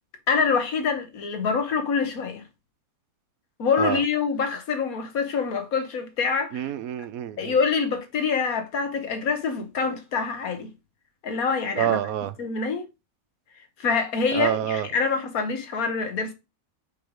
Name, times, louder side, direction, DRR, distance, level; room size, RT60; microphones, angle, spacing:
voice 1, 0.3-2.4 3.6-6.7 7.4-10.7 11.2-12.0 12.4-12.8 13.8-16.3, left 5 dB, 80° left, 1.6 m, -25 dB
voice 2, 6.5-7.5 11.8-12.3 14.3-14.9, right 11 dB, 80° right, 1.1 m, -27 dB
5.3 x 4.7 x 5.1 m
omnidirectional pair, 1.5 m